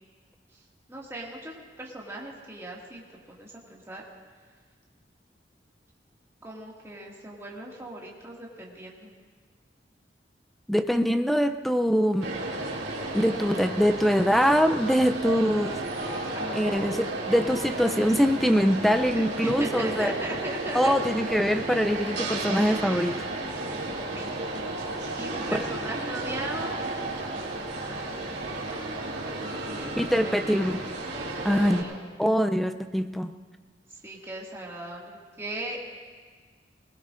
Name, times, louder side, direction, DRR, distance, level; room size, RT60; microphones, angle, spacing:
voice 1, 0.9-4.0 6.4-9.1 16.3-16.8 19.1-21.0 21.6-21.9 24.1-24.3 25.2-26.8 27.8-28.2 29.4-29.9 30.2-30.8 31.5-32.0 34.0-35.8, right 1 dB, 15° right, -4 dB, 2.1 m, -38 dB
voice 2, 10.7-12.3 13.1-15.8 16.5-20.1 20.7-23.2 25.5-25.6 30.0-30.8 31.4-31.9 32.2-33.3, equal, ahead, 8 dB, 0.4 m, -23 dB
sound 1, 12.2-31.8, right 2 dB, 75° right, 2.8 m, -33 dB
20.5 x 20.5 x 2.6 m, 1.5 s
head